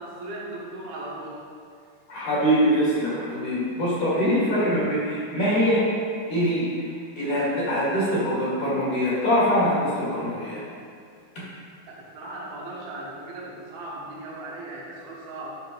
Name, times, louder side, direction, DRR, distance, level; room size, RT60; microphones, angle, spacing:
voice 1, 0.0-1.4 11.9-15.5, right 2 dB, 75° right, -5 dB, 3.1 m, -37 dB
voice 2, 2.1-5.8 6.3-6.7 7.2-10.6, equal, 55° left, -8 dB, 3.1 m, -23 dB
10.5 x 6.1 x 3.0 m, 2.2 s
omnidirectional pair, 4.7 m